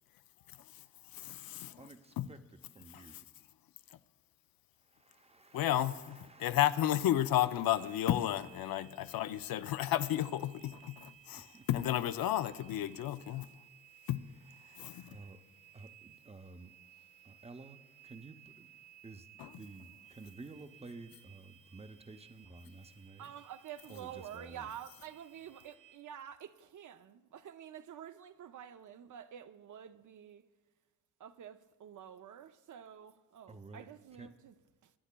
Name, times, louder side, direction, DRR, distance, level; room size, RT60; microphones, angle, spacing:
voice 1, 1.1-1.8 2.2-2.3 2.9-3.0 5.5-13.5 14.1-14.2 14.8-15.2 19.4-19.5, left 12 dB, 85° left, 0.5 m, -32 dB
voice 2, 1.8-3.3 4.8-8.1 11.3-11.7 15.1-15.4 15.7-16.7 17.2-18.8 19.0-23.4 23.9-24.8 33.5-34.3, right 3 dB, 20° right, 0.6 m, -53 dB
sound 1, 7.8-26.0, right 11 dB, 45° right, 1.2 m, -60 dB
voice 3, 23.2-30.4 31.2-34.5, right 9 dB, 60° right, 0.5 m, -49 dB
23.5 x 9.9 x 2.2 m
cardioid pair, 85°, 34 cm